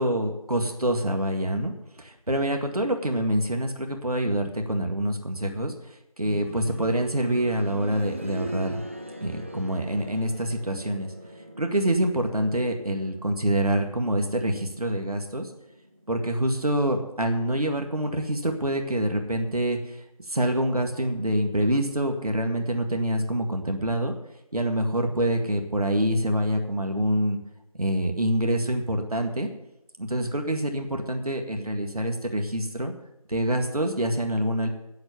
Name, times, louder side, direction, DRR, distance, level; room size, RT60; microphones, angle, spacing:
voice 1, 0.0-8.8 9.2-11.1 11.6-15.5 16.1-24.1 24.5-27.4 27.7-29.5 30.0-32.9 33.3-34.7, right 1 dB, 80° right, 4 dB, 1.9 m, -26 dB
sound 1, 6.2-17.0 18.4-18.5, equal, 20° right, 0.7 m, -42 dB
9.0 x 7.9 x 8.2 m, 0.87 s
figure-of-eight pair, 170°, 19 cm